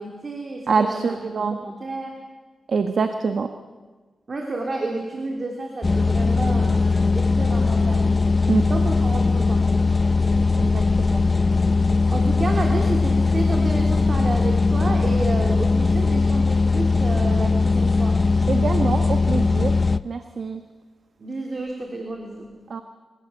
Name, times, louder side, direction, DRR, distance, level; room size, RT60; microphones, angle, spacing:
voice 1, 0.0-2.1 4.3-8.2 8.7-9.9 12.1-18.2 21.2-22.5, right 2 dB, 45° right, 1 dB, 3.1 m, -31 dB
voice 2, 0.7-1.6 2.7-3.5 8.5-8.6 10.6-11.2 18.5-19.7 20.0-20.6 22.7-22.8, right 5 dB, 60° right, 7 dB, 1.3 m, -24 dB
sound 1, 5.8-20.0, left 3 dB, 30° left, 0.6 m, -20 dB
25.5 x 16.5 x 7.8 m, 1.3 s
cardioid pair, 90°, 0 cm